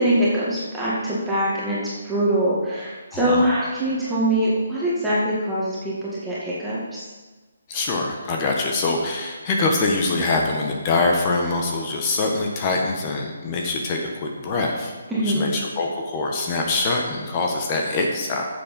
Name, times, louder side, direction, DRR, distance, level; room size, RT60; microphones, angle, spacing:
voice 1, 0.0-1.8 2.0-7.0 15.1-15.5, right 1 dB, 5° right, -9 dB, 2.2 m, -23 dB
voice 2, 3.1-3.5 7.7-18.4, left 3 dB, 30° left, 1 dB, 1.4 m, -24 dB
9.2 x 7.4 x 5.4 m, 1.3 s
figure-of-eight pair, 150°, 0 cm